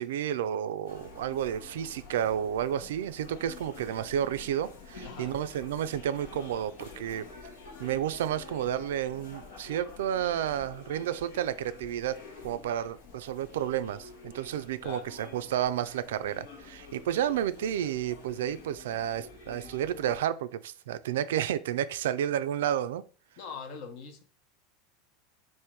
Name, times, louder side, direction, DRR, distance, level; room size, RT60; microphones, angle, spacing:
voice 1, 0.0-7.3 7.8-23.0, right 10 dB, 85° right, 0.3 m, -31 dB
sound 1, 0.9-20.2, left 4 dB, 85° left, 1.1 m, -48 dB
voice 2, 5.0-5.4 14.8-15.1 23.4-24.2, left 5 dB, 60° left, 0.9 m, -42 dB
3.6 x 2.5 x 4.4 m
supercardioid pair, 110°, 0 cm